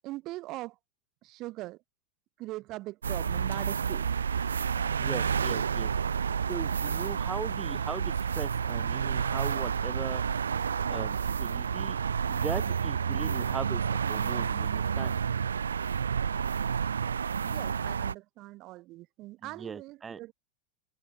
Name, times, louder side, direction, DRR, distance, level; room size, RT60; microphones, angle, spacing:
voice 1, 0.0-0.8 1.2-1.8 2.4-4.1 17.4-20.3, right 18 dB, 40° right, 1.2 m, -41 dB
sound 1, 3.0-18.1, right 7 dB, 70° right, 0.5 m, -30 dB
voice 2, 5.0-5.9 6.5-10.2 10.9-12.0 12.3-15.2 19.4-20.2, right 6 dB, 15° right, 1.2 m, -39 dB
figure-of-eight pair, 90°, 0 cm